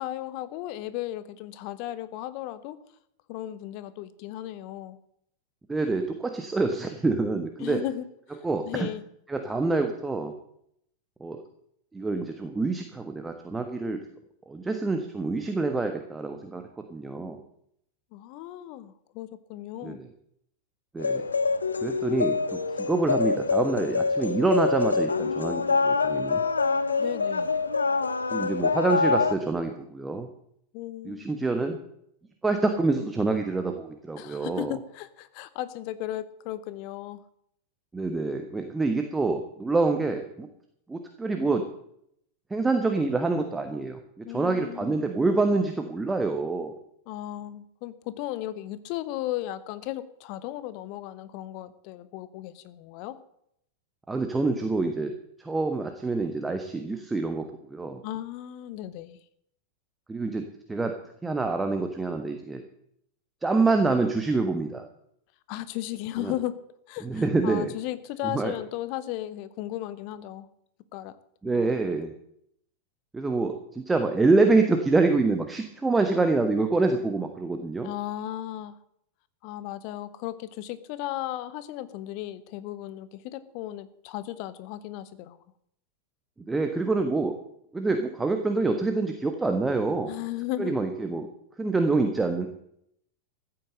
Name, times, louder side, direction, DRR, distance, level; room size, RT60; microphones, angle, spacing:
voice 1, 0.0-2.8 3.3-5.0 7.6-8.4 8.6-9.0 18.1-20.0 27.0-27.6 30.7-31.3 34.2-37.2 44.2-45.1 47.1-53.2 58.0-59.2 65.5-66.6 66.9-70.5 70.9-71.2 71.4-72.0 77.8-78.8 79.4-85.4 90.1-90.7, left 14 dB, 45° left, 14 dB, 1.1 m, -35 dB
voice 2, 5.7-7.8 8.4-8.9 9.3-10.3 11.2-11.4 11.9-14.0 14.5-16.6 16.9-17.4 19.8-20.1 20.9-21.2 21.8-26.4 28.3-30.3 31.0-31.8 32.4-34.7 37.9-40.5 40.9-41.6 42.5-46.7 54.1-55.1 55.4-58.0 60.1-60.9 61.2-62.6 63.4-64.9 66.2-66.3 67.0-67.7 68.2-68.5 71.4-72.1 73.1-77.9 86.5-87.3 87.7-90.1 90.6-91.3 91.6-92.5, right 3 dB, 10° right, 6 dB, 1.4 m, -26 dB
sound 1, 21.0-29.3, left 4 dB, 75° left, 0.9 m, -25 dB
15.0 x 9.0 x 7.6 m, 0.72 s
figure-of-eight pair, 90°, 0 cm